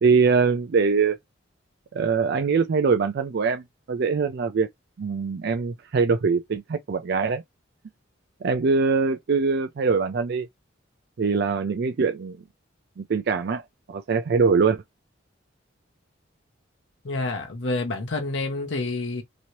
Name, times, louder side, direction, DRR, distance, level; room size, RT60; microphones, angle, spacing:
voice 1, 0.0-1.2 1.9-4.7 5.0-7.4 8.4-10.5 11.2-12.4 13.0-13.6 13.9-14.8, right 5 dB, 55° right, 0.4 m, -23 dB
voice 2, 17.0-19.2, left 2 dB, 65° left, 0.7 m, -28 dB
3.0 x 2.7 x 2.9 m
head